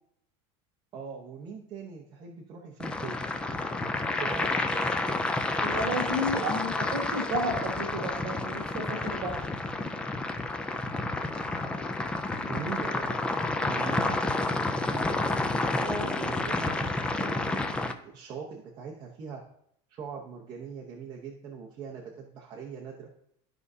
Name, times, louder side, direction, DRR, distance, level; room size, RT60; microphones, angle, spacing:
voice 1, 0.9-3.3 4.2-4.9 12.4-13.2 13.6-15.3 16.1-17.8 18.0-19.4 19.9-23.1, right 5 dB, 30° right, -2 dB, 0.9 m, -41 dB
sound 1, 2.8-17.9, left 2 dB, 5° left, 0.3 m, -30 dB
voice 2, 5.6-9.4 15.8-16.2, equal, 45° right, 2 dB, 1.9 m, -32 dB
13.0 x 4.9 x 2.7 m, 0.71 s
cardioid pair, 180°, 14 cm